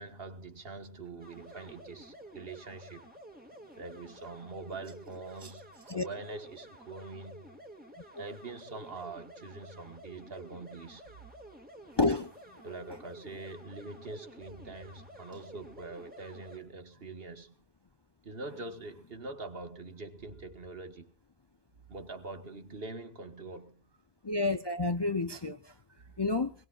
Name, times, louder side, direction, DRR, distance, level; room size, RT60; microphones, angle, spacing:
voice 1, 0.0-3.1 3.8-7.5 8.2-11.1 12.6-17.5 18.2-21.1 21.9-23.8 25.9-26.2, right 3 dB, 65° right, 1.8 m, -44 dB
sound 1, 1.2-16.6, right 1 dB, 10° right, 2.2 m, -52 dB
voice 2, 12.0-12.3 24.2-25.7 26.2-26.5, left 3 dB, 30° left, 0.6 m, -29 dB
21.5 x 19.5 x 2.5 m
omnidirectional pair, 1.0 m